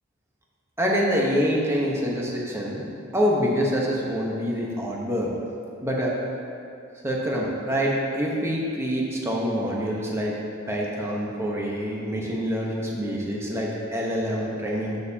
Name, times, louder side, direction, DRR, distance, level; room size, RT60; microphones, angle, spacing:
voice 1, 0.8-2.8 3.1-5.3 5.8-6.1 7.0-10.3 10.7-15.0, equal, 15° right, -3 dB, 1.1 m, -26 dB
14.0 x 6.6 x 2.9 m, 2.6 s
head